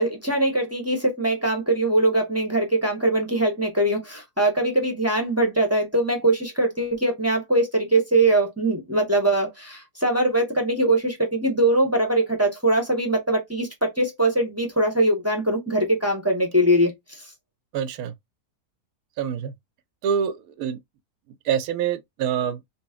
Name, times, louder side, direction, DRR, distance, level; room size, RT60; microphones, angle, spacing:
voice 1, 0.0-16.9, right 1 dB, 10° right, 0.7 m, -22 dB
voice 2, 17.7-18.1 19.2-19.5 20.0-20.8 21.5-22.6, right 8 dB, 75° right, 1.0 m, -26 dB
4.0 x 2.0 x 3.5 m
omnidirectional pair, 1.7 m